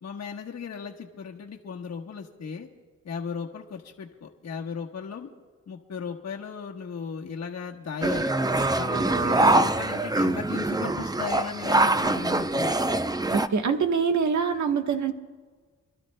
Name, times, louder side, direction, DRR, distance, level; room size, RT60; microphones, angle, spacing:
voice 1, 0.0-2.7 3.0-5.3 5.7-8.3 8.8-12.7, left 6 dB, 60° left, 0 dB, 1.2 m, -36 dB
sound 1, 8.0-13.5, right 2 dB, 15° right, 0.5 m, -24 dB
voice 2, 13.3-15.1, right 6 dB, 70° right, 5 dB, 1.2 m, -25 dB
29.5 x 12.5 x 2.2 m, 1.5 s
cardioid pair, 65°, 30 cm